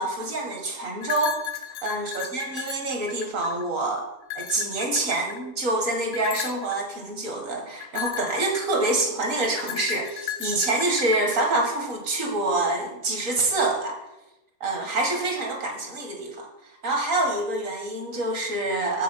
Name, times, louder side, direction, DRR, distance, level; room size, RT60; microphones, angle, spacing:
voice 1, 0.0-1.4 1.8-4.0 4.4-14.0 14.6-16.5 16.8-19.0, right 2 dB, 55° right, 2 dB, 2.0 m, -26 dB
sound 1, 1.0-3.7 4.2-5.5 6.1-6.8 7.8-9.0 9.6-11.7, left 11 dB, 80° left, 1.1 m, -35 dB
7.3 x 6.7 x 5.8 m, 0.94 s
omnidirectional pair, 1.7 m